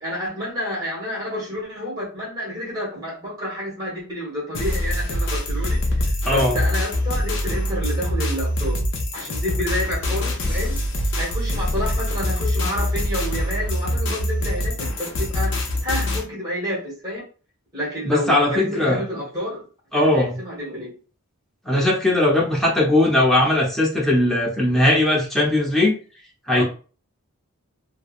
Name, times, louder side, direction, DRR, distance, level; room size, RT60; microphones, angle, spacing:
voice 1, 0.0-8.8 9.1-10.8 11.1-15.6 15.8-17.2 17.7-19.6 19.9-20.9 26.5-26.6, equal, 15° right, -5 dB, 1.3 m, -29 dB
sound 1, 4.5-16.2, left 1 dB, 55° left, 0.6 m, -24 dB
voice 2, 6.3-6.6 18.0-19.0 19.9-20.4 21.6-25.9 26.5-26.6, left 1 dB, ahead, -4 dB, 0.7 m, -19 dB
3.3 x 2.0 x 2.4 m, 0.37 s
head